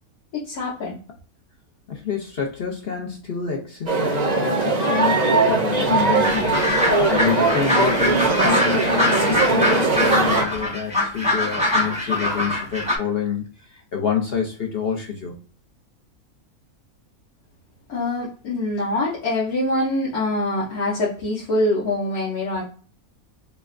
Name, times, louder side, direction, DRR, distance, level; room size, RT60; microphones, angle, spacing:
voice 1, 0.3-1.0 17.9-22.6, left 2 dB, 80° left, -8 dB, 1.6 m, -24 dB
voice 2, 1.9-6.6 7.1-15.3, left 6 dB, 55° left, 1 dB, 0.7 m, -27 dB
sound 1, 3.9-10.4, right 3 dB, 40° right, 0.6 m, -20 dB
sound 2, 6.2-13.0, left 1 dB, 5° right, 0.7 m, -23 dB
5.5 x 2.2 x 2.4 m, 0.40 s
omnidirectional pair, 1.5 m